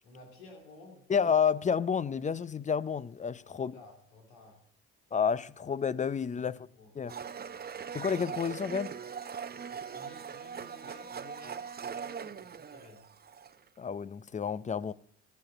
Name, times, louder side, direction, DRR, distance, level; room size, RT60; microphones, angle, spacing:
voice 1, 0.0-1.1 3.4-4.7 6.3-6.9 7.4-7.9 9.8-13.1, left 2 dB, 90° left, 3.0 m, -54 dB
voice 2, 1.1-3.7 5.1-6.6 7.0-7.1 7.9-8.9 13.8-14.9, left 6 dB, 25° left, 0.5 m, -30 dB
Domestic sounds home sounds, 7.1-13.7, right 7 dB, 30° right, 0.7 m, -41 dB
15.0 x 6.5 x 7.7 m
hypercardioid pair, 65°, 32 cm